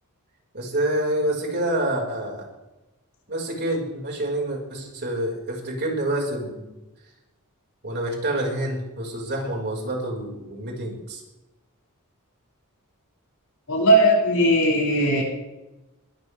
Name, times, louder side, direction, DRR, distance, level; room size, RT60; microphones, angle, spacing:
voice 1, 0.5-2.5 3.3-6.7 7.8-11.2 15.1-15.2, right 1 dB, 50° right, 0 dB, 4.9 m, -27 dB
voice 2, 13.7-15.2, right 1 dB, 80° left, -2 dB, 6.4 m, -18 dB
22.0 x 14.0 x 3.4 m, 1.0 s
head